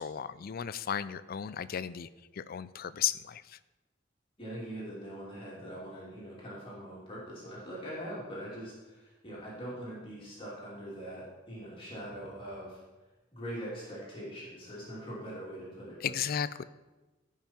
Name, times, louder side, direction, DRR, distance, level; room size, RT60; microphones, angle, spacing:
voice 1, 0.0-3.6 16.0-16.6, left 9 dB, 50° left, 16 dB, 0.4 m, -35 dB
voice 2, 4.4-12.8 13.3-16.1, equal, 30° left, -6 dB, 2.8 m, -42 dB
16.0 x 5.7 x 4.4 m, 1.2 s
head